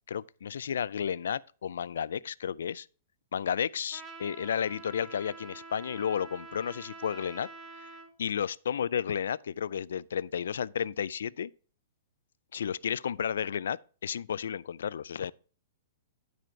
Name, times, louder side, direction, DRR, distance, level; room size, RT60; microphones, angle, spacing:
voice 1, 0.1-2.9 3.3-7.5 7.8-7.9 8.2-11.5 12.5-15.3, left 8 dB, 85° left, 0.3 m, -32 dB
Trumpet, 3.9-8.1, right 3 dB, 10° right, 0.7 m, -47 dB
10.5 x 5.0 x 4.6 m
hypercardioid pair, 180°, 0 cm